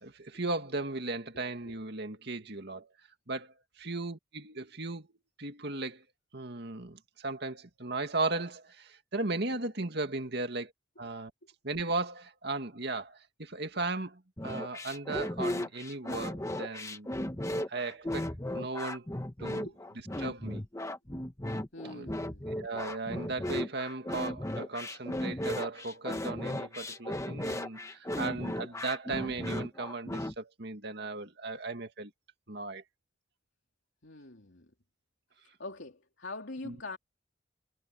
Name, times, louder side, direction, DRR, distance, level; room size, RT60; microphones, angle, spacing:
voice 1, 0.0-2.9 3.3-5.1 5.4-6.0 6.3-10.7 11.0-11.3 11.6-17.1 17.5-19.1 19.4-19.7 20.2-20.6 21.8-22.1 22.6-32.1 32.5-32.8 36.6-36.8, right 3 dB, 60° right, 2.3 m, -36 dB
sound 1, 14.4-30.3, left 1 dB, 15° left, 1.3 m, -36 dB
voice 2, 21.7-22.4 34.0-34.7 35.4-37.0, left 2 dB, 75° left, 3.1 m, -44 dB
head